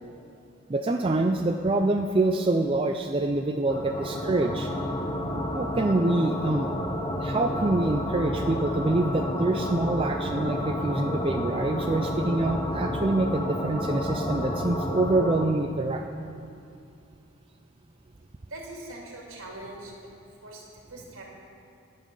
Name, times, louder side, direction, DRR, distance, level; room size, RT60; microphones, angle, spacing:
voice 1, 0.7-4.9 5.5-6.7 7.2-16.0, right 2 dB, 25° right, 4 dB, 0.4 m, -26 dB
sound 1, 3.7-15.5, left 1 dB, 20° left, 0.8 m, -30 dB
voice 2, 18.4-20.0 20.4-21.2, right 2 dB, 65° right, -2 dB, 2.6 m, -42 dB
20.5 x 7.4 x 5.5 m, 2.5 s
head